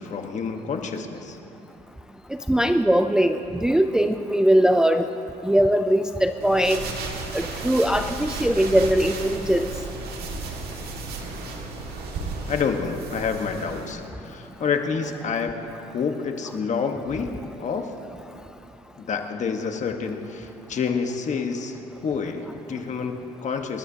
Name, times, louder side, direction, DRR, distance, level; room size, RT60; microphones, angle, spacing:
voice 1, 0.0-1.4 12.5-15.6 15.9-17.9 19.0-23.8, left 5 dB, 45° left, 5 dB, 1.2 m, -28 dB
voice 2, 2.3-5.1 5.4-6.9 7.3-9.7, right 1 dB, 5° right, 7 dB, 0.4 m, -20 dB
sound 1, 6.4-13.9, right 3 dB, 65° right, 2.0 m, -34 dB
27.0 x 12.5 x 2.8 m, 2.7 s
cardioid pair, 110°, 17 cm